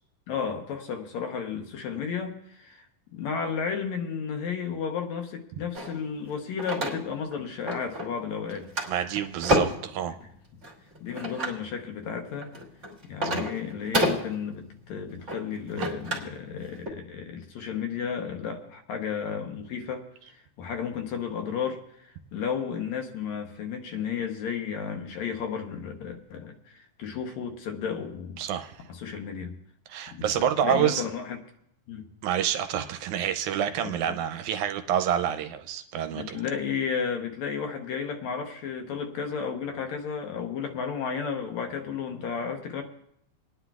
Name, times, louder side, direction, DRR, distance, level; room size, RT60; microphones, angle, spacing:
voice 1, 0.3-2.9 3.1-8.7 11.0-12.5 13.0-28.4 28.9-29.5 30.1-31.4 31.9-32.1 33.8-34.2 36.1-42.8, left 6 dB, 70° left, 4 dB, 2.1 m, -33 dB
sound 1, 5.7-7.3 7.7-8.2 8.5-9.9 10.6-11.6 12.2-16.4 16.7-16.9, equal, 30° right, 1.5 m, -30 dB
voice 2, 8.9-10.1 13.3-13.4 15.8-15.9 28.4-28.8 29.9-31.1 32.2-36.4, right 9 dB, 80° right, 8 dB, 2.0 m, -28 dB
28.0 x 9.9 x 2.3 m, 0.72 s
omnidirectional pair, 3.5 m